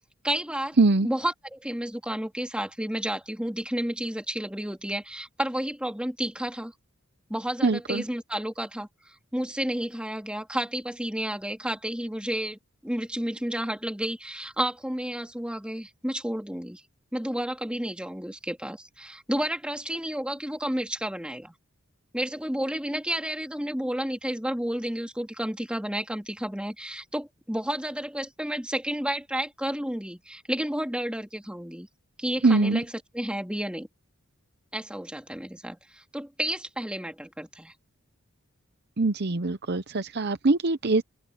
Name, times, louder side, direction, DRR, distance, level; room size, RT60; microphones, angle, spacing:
voice 1, 0.2-0.8 1.0-6.7 7.3-16.8 17.1-21.5 22.1-31.9 32.2-32.9 33.1-33.9 34.7-37.7, right 1 dB, 5° right, 2.7 m, -31 dB
voice 2, 0.8-1.1 7.6-8.0 32.4-32.8 39.0-41.0, right 3 dB, 50° right, 0.8 m, -23 dB
open air
head